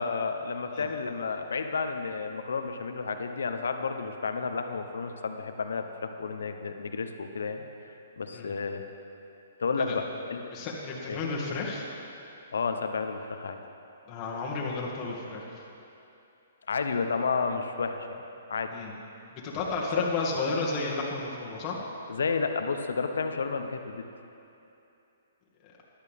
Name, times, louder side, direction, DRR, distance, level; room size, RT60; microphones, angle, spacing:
voice 1, 0.0-8.8 9.6-10.5 11.1-11.2 12.5-13.6 16.7-18.1 18.5-18.7 20.0-20.1 22.1-24.0, left 4 dB, 80° left, 7 dB, 0.9 m, -31 dB
voice 2, 10.5-11.9 14.1-15.6 18.7-18.9 19.3-21.8, left 3 dB, 30° left, -4 dB, 2.2 m, -32 dB
14.5 x 11.5 x 3.6 m, 2.8 s
hypercardioid pair, 145°, 0 cm